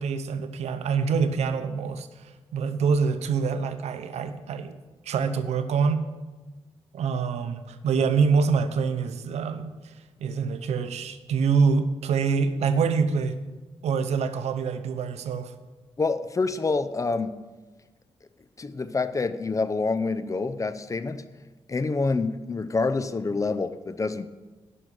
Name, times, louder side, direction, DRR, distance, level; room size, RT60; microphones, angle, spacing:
voice 1, 0.0-2.1 2.5-4.7 5.1-6.0 6.9-9.7 10.2-13.4 13.8-15.5, right 5 dB, 85° right, 11 dB, 0.8 m, -25 dB
voice 2, 16.0-17.4 18.6-21.2 21.7-24.3, left 3 dB, 30° left, 12 dB, 0.7 m, -27 dB
11.0 x 6.1 x 8.2 m, 1.2 s
cardioid pair, 85°, 11 cm